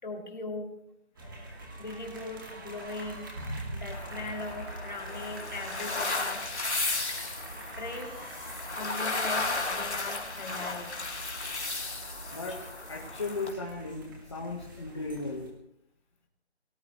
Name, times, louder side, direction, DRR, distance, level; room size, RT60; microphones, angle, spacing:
voice 1, 0.0-0.8 1.2-3.3 3.7-6.4 7.8-8.2 8.7-11.5 12.3-12.4, left 2 dB, 40° left, 2 dB, 2.9 m, -40 dB
sound 1, 1.1-15.5, right 1 dB, 20° right, 2.3 m, -44 dB
sound 2, 3.9-13.5, left 3 dB, 75° left, 2.8 m, -34 dB
voice 2, 12.3-15.5, left 3 dB, 25° left, -2 dB, 1.5 m, -36 dB
23.5 x 18.5 x 3.2 m, 0.79 s
figure-of-eight pair, 175°, 34 cm